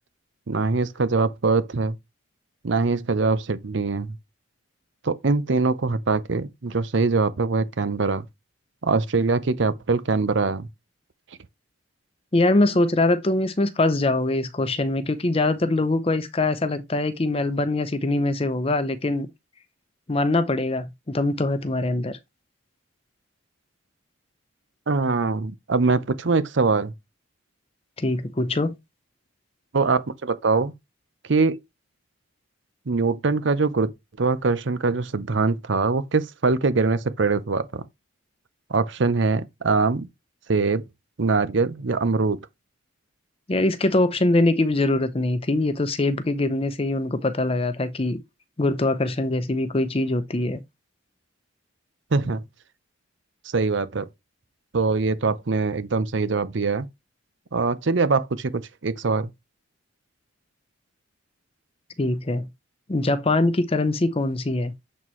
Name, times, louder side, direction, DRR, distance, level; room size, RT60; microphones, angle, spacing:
voice 1, 0.5-2.0 2.6-4.2 5.0-8.2 8.8-10.7 24.9-26.9 29.7-30.7 31.3-31.6 32.9-33.9 34.2-37.8 38.7-40.1 40.5-40.8 41.2-42.4 52.1-52.4 53.4-54.1 54.7-56.9 57.5-59.3, right 4 dB, 60° right, 0.6 m, -23 dB
voice 2, 12.3-19.3 20.1-22.2 28.0-28.7 43.5-48.2 48.6-50.6 62.0-62.5 62.9-64.7, left 2 dB, 25° left, 0.6 m, -23 dB
7.3 x 4.3 x 3.1 m
head